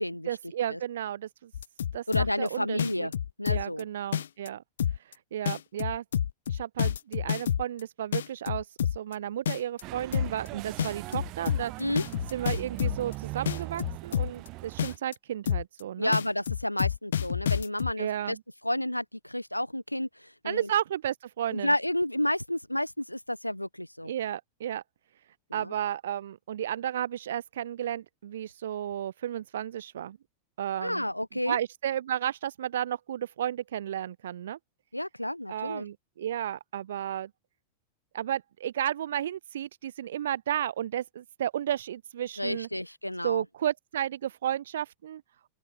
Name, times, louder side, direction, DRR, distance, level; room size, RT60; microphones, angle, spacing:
voice 1, 0.3-1.5 1.9-3.1 3.5-4.6 5.3-6.0 6.5-8.7 8.9-11.7 12.3-16.1 18.0-18.4 20.4-21.7 24.0-24.8 25.5-30.2 30.6-31.1 31.5-34.6 35.5-37.3 38.1-42.7 43.2-45.2, right 11 dB, 60° right, 0.9 m, -33 dB
sound 1, 1.5-2.5 2.8-3.8 4.1-4.5 4.8-5.1 5.5-7.8 8.1-9.1 9.5-9.8 10.1-10.5 10.8-13.1 13.5-14.5 14.8-15.1 15.5-15.8 16.1-17.9, left 9 dB, 65° left, 1.0 m, -28 dB
voice 2, 2.1-3.1 3.4-3.9 11.8-12.0 16.0-18.4 18.6-20.7 21.5-24.1 25.5-25.7 30.8-31.6 34.9-35.8 42.4-43.4, left 1 dB, 90° left, 0.7 m, -31 dB
sound 2, 9.8-15.0, right 23 dB, 40° right, 1.2 m, -40 dB
open air
figure-of-eight pair, 90°, 0 cm